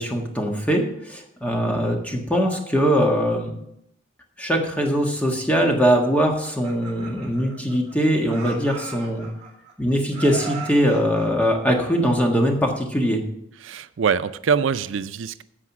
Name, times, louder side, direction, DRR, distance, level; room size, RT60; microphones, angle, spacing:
voice 1, 0.0-3.5 4.4-9.3 9.8-13.2, equal, 10° left, 1 dB, 1.6 m, -21 dB
Laughter, 6.2-7.9 8.2-9.7 10.1-12.4, right 4 dB, 35° right, 2.6 m, -38 dB
voice 2, 13.6-15.4, right 6 dB, 90° right, 13 dB, 0.5 m, -24 dB
14.5 x 4.9 x 6.0 m, 0.79 s
head